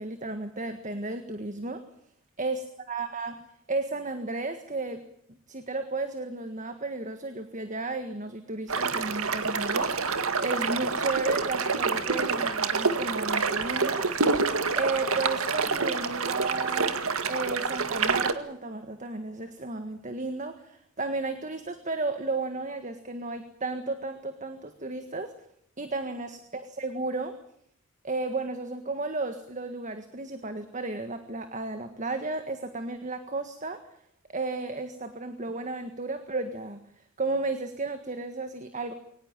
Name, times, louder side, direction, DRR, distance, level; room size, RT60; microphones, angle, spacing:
voice 1, 0.0-1.8 2.4-2.6 2.9-3.4 3.7-5.0 5.5-14.1 14.7-25.3 25.8-27.4 28.0-33.9 34.3-36.8 37.2-38.9, right 3 dB, 35° right, 8 dB, 1.7 m, -33 dB
sound 1, 8.7-18.3, right 4 dB, 75° right, 2.0 m, -27 dB
23.0 x 19.5 x 9.0 m, 0.68 s
head